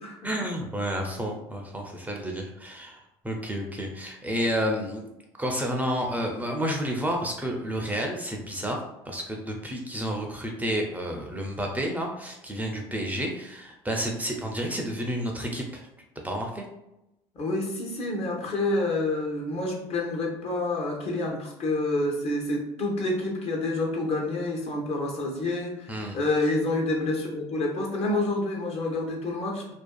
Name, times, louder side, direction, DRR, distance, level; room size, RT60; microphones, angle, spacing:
voice 1, 0.2-5.1 5.4-15.9 16.2-16.7 25.9-26.2, equal, 10° right, 1 dB, 0.4 m, -30 dB
voice 2, 17.3-29.7, left 2 dB, 50° left, -1 dB, 0.8 m, -28 dB
2.5 x 2.3 x 2.2 m, 0.88 s
supercardioid pair, 80°, 13 cm